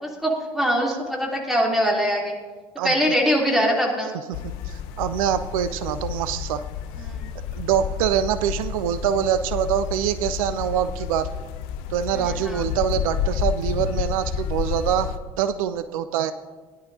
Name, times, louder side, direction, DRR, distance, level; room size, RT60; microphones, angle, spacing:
voice 1, 0.0-2.3 2.8-4.1 7.1-7.2 12.5-12.6, equal, ahead, -2 dB, 2.8 m, -22 dB
sound 1, 4.3-15.2, left 8 dB, 55° left, 0.7 m, -30 dB
voice 2, 4.6-6.6 7.5-11.3 11.9-16.3, right 9 dB, 60° right, 12 dB, 0.5 m, -24 dB
17.5 x 10.5 x 2.6 m, 1.4 s
figure-of-eight pair, 70°, 20 cm